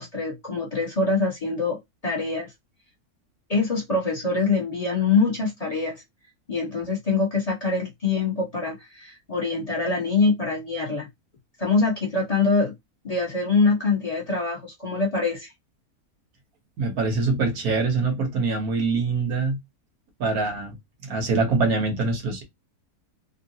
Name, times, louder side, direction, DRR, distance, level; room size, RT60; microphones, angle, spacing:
voice 1, 0.0-2.5 3.5-6.0 6.5-11.1 11.6-12.7 13.0-15.5, left 4 dB, 25° left, 1.2 m, -24 dB
voice 2, 16.8-19.6 20.2-20.7 21.0-22.4, right 3 dB, 80° right, 1.5 m, -24 dB
3.7 x 2.3 x 2.7 m
omnidirectional pair, 1.5 m